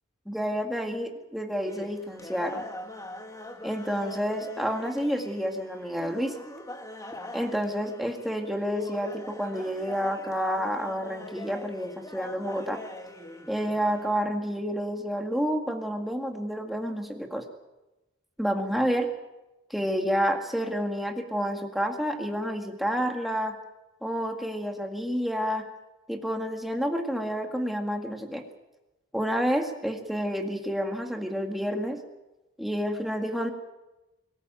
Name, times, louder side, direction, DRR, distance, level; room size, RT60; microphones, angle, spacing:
voice 1, 0.3-2.7 3.6-6.4 7.3-12.8 13.5-17.5 18.4-19.1 19.7-23.6 24.0-25.7 26.1-28.4 29.1-32.0 32.6-33.5, equal, ahead, 3 dB, 2.0 m, -29 dB
sound 1, 1.6-14.1, left 1 dB, 15° left, 1.6 m, -42 dB
23.5 x 14.0 x 9.2 m, 1.0 s
head